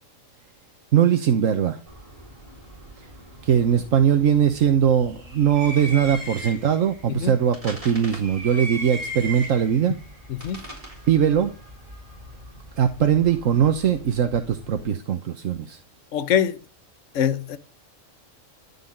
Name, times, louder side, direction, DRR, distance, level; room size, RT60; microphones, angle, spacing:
voice 1, 0.9-1.8 3.4-10.0 11.1-11.5 12.8-15.8, right 8 dB, 75° right, 1.4 m, -20 dB
sound 1, 1.9-14.9, right 1 dB, 25° right, 3.9 m, -39 dB
voice 2, 16.1-16.6 17.1-17.6, left 9 dB, 70° left, 1.2 m, -23 dB
13.5 x 5.6 x 9.1 m
omnidirectional pair, 1.3 m